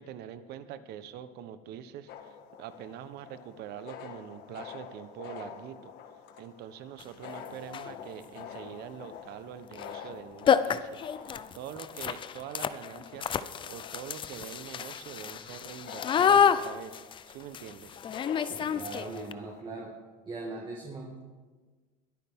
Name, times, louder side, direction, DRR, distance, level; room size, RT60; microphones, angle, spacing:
voice 1, 0.0-5.9 6.4-17.0 17.3-18.0, right 9 dB, 60° right, 12 dB, 1.0 m, -44 dB
sound 1, 2.1-19.6, left 8 dB, 60° left, 1.5 m, -47 dB
sound 2, 7.0-7.1 7.6-8.0 9.7-9.9 10.1-10.2 10.5-19.3, left 8 dB, 25° left, 0.5 m, -29 dB
voice 2, 18.4-19.9 20.3-21.2, right 2 dB, 25° right, -1 dB, 1.9 m, -40 dB
21.5 x 10.5 x 3.7 m, 1.4 s
cardioid pair, 130°, 19 cm